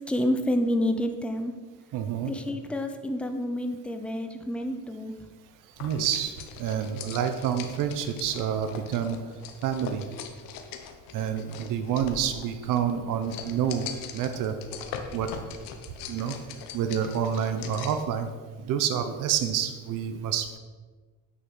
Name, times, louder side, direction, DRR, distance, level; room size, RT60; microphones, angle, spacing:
voice 1, 0.1-1.5 2.3-5.1, left 1 dB, 5° left, 6 dB, 0.8 m, -28 dB
voice 2, 1.9-2.3 5.8-9.2 9.6-10.1 11.1-13.9 14.1-14.6 15.1-15.3 16.1-16.4 16.7-18.3 18.6-20.6, right 8 dB, 70° right, 8 dB, 1.0 m, -28 dB
sound 1, 5.8-18.1, left 7 dB, 90° left, 1.2 m, -42 dB
9.4 x 6.3 x 6.2 m, 1.4 s
cardioid pair, 130°, 33 cm